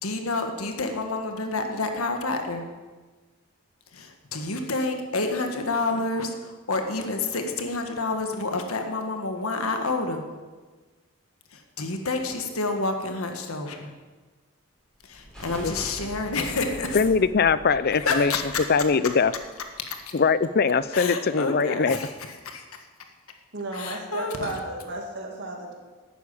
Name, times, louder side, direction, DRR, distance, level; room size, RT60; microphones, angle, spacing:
voice 1, 0.0-2.7 3.9-10.2 11.5-14.0 15.0-17.1 17.9-18.7 19.9-20.0 20.9-23.1 23.7-24.6, left 3 dB, 85° left, 5 dB, 1.6 m, -29 dB
sound 1, 14.9-20.0, equal, 5° left, 5.1 m, -44 dB
voice 2, 16.9-18.3 18.7-19.3 20.1-22.0, left 5 dB, 45° left, 15 dB, 0.5 m, -21 dB
voice 3, 23.5-25.7, right 2 dB, 55° right, 1 dB, 2.2 m, -34 dB
12.0 x 9.4 x 8.5 m, 1.3 s
head